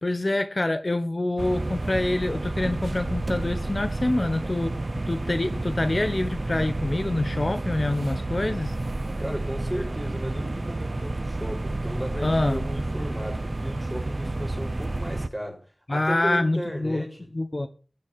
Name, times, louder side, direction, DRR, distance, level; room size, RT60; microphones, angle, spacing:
voice 1, 0.0-4.8 5.1-8.7 12.2-12.7 15.9-17.1 17.3-17.7, left 2 dB, 50° left, 1.1 m, -26 dB
sound 1, 1.4-15.3, right 2 dB, 60° right, 0.7 m, -30 dB
voice 2, 9.2-15.6 15.9-17.3, equal, 5° right, 5.7 m, -35 dB
14.0 x 7.1 x 6.9 m
wide cardioid pair, 45°, 0 cm